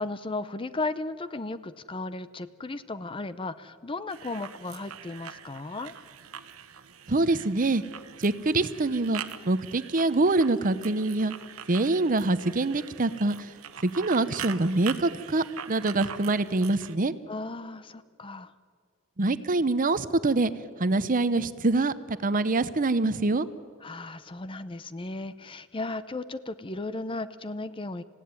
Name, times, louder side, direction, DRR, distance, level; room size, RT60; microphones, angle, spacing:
voice 1, 0.0-5.9 17.3-18.5 23.8-28.0, left 2 dB, 25° left, 14 dB, 0.6 m, -35 dB
sound 1, 4.1-17.0, right 8 dB, 80° right, 1.1 m, -43 dB
voice 2, 7.1-7.8 8.2-11.3 11.7-13.5 13.8-17.1 19.2-20.5 20.8-23.5, right 2 dB, 40° right, 14 dB, 0.8 m, -25 dB
27.0 x 16.0 x 9.6 m, 2.1 s
head